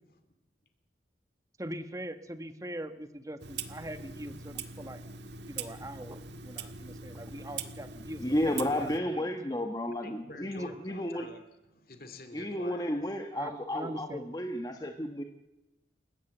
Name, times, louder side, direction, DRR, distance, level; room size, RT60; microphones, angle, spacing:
voice 1, 1.6-5.0 5.5-9.2 13.3-14.2, right 1 dB, 20° right, 9 dB, 1.2 m, -42 dB
Clock, 3.4-9.0, right 5 dB, 90° right, 1.8 m, -42 dB
voice 2, 8.2-11.3 12.3-15.2, left 1 dB, 20° left, 4 dB, 1.2 m, -32 dB
voice 3, 10.0-13.0, left 2 dB, 55° left, 7 dB, 2.4 m, -48 dB
28.5 x 15.0 x 7.8 m, 1.0 s
head